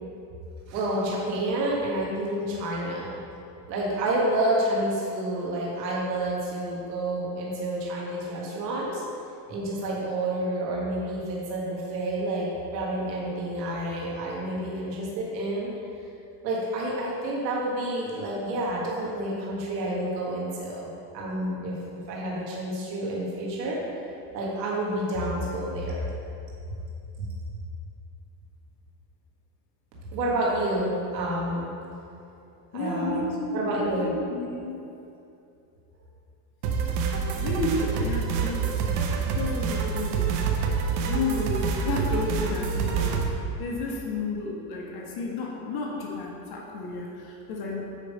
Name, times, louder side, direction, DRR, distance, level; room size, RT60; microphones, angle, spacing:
voice 1, 0.7-3.1 3.7-9.0 9.5-15.7 16.4-21.8 22.1-23.8 24.3-26.0 27.2-27.3 30.1-31.7 32.7-34.1, right 1 dB, 90° right, -4 dB, 1.7 m, -29 dB
voice 2, 32.7-33.7 34.0-34.8 37.4-38.7 39.2-40.3 41.0-47.9, left 3 dB, 50° left, -2 dB, 1.6 m, -32 dB
sound 1, 36.6-43.3, right 5 dB, 75° right, 0.9 m, -27 dB
9.1 x 3.4 x 5.3 m, 2.7 s
supercardioid pair, 105°, 49 cm